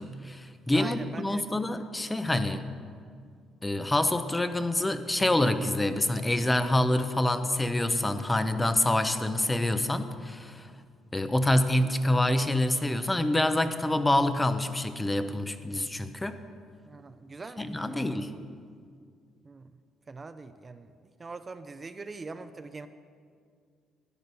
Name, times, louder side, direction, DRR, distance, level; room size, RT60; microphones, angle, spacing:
voice 1, 0.0-2.6 3.6-10.7 11.1-16.4 17.6-18.3, left 1 dB, 15° left, 10 dB, 0.8 m, -26 dB
voice 2, 0.7-1.9 16.9-18.3 19.4-19.7 20.1-22.9, right 3 dB, 30° right, 10 dB, 0.6 m, -43 dB
12.0 x 9.5 x 7.0 m, 2.2 s
supercardioid pair, 80°, 0 cm